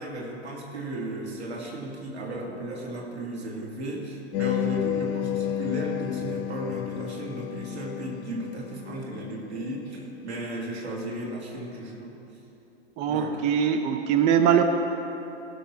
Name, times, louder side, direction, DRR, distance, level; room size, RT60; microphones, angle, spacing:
voice 1, 0.0-12.2 13.1-13.4, right 1 dB, 75° right, -3 dB, 2.4 m, -35 dB
sound 1, 4.3-9.8, left 12 dB, 35° left, 0.6 m, -31 dB
voice 2, 13.0-14.6, right 8 dB, 20° right, 7 dB, 0.4 m, -22 dB
16.5 x 6.2 x 4.5 m, 2.9 s
figure-of-eight pair, 95°, 33 cm